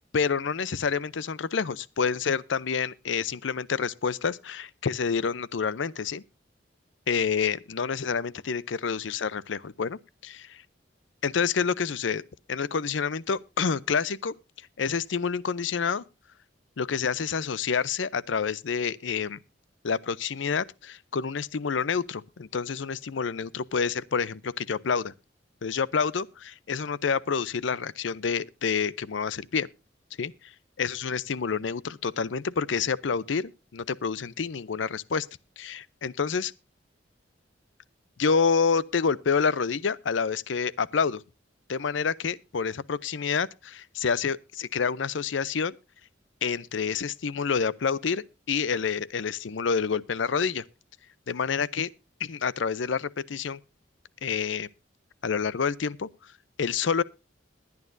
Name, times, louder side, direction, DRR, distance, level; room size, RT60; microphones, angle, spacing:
voice 1, 0.1-6.2 7.1-10.6 11.2-12.2 12.5-14.3 14.8-16.0 16.8-19.4 19.8-25.1 25.6-29.7 30.2-30.3 30.8-35.3 35.6-36.5 38.2-41.2 41.7-45.7 46.4-50.6 51.3-51.9 52.2-53.6 54.2-54.7 55.2-56.1 56.6-57.0, left 6 dB, 75° left, 0.6 m, -28 dB
21.5 x 9.5 x 2.6 m
head